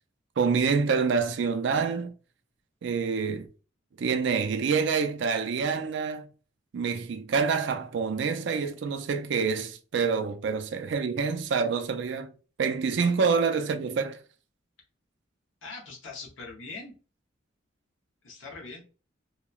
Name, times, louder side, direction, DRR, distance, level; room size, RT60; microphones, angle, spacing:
voice 1, 0.4-2.1 2.8-3.5 4.0-6.3 6.7-12.3 12.6-14.2, right 5 dB, 60° right, 0.3 m, -27 dB
voice 2, 15.6-16.9 18.2-18.8, left 3 dB, 70° left, 0.7 m, -41 dB
2.8 x 2.0 x 2.2 m
head